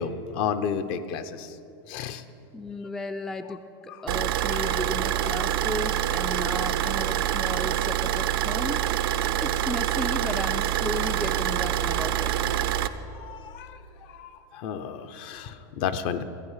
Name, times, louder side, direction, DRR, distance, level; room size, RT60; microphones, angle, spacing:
voice 1, 0.0-1.6 1.9-2.2 4.6-4.8 5.2-5.4 13.2-16.2, left 7 dB, 50° left, 11 dB, 0.7 m, -32 dB
voice 2, 2.5-12.3, left 2 dB, 5° left, 8 dB, 0.3 m, -35 dB
Car / Idling, 4.1-12.9, right 12 dB, 75° right, 0.6 m, -26 dB
14.5 x 9.2 x 5.6 m, 2.8 s
supercardioid pair, 130°, 12 cm